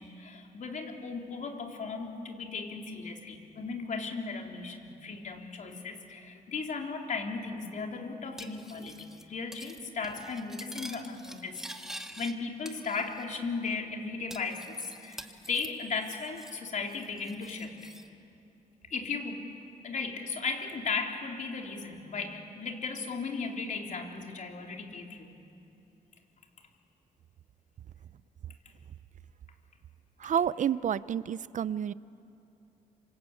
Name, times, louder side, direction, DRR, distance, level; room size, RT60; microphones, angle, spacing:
voice 1, 0.0-4.8 5.0-11.6 12.2-14.8 15.0-15.2 15.5-17.7 18.9-19.4 19.8-25.3, left 4 dB, 55° left, 2 dB, 3.8 m, -36 dB
Cutlery silverware, 8.4-9.2 9.5-9.8 10.0-12.3 12.7-13.4 13.7-13.8 14.3-16.6 16.9-18.1, equal, 5° right, 2.1 m, -46 dB
voice 2, 30.2-31.9, right 8 dB, 55° right, 18 dB, 0.6 m, -29 dB
27.0 x 25.5 x 8.6 m, 2.7 s
cardioid pair, 75°, 15 cm